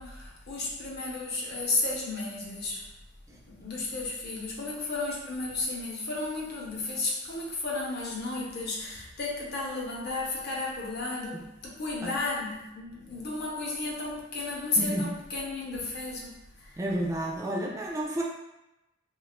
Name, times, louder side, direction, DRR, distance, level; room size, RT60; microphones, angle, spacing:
voice 1, 0.0-2.9 3.5-16.8, left 3 dB, 55° left, -3 dB, 0.7 m, -33 dB
voice 2, 14.8-15.1 16.8-18.2, right 1 dB, 15° right, -2 dB, 0.3 m, -31 dB
2.3 x 2.3 x 3.5 m, 0.93 s
head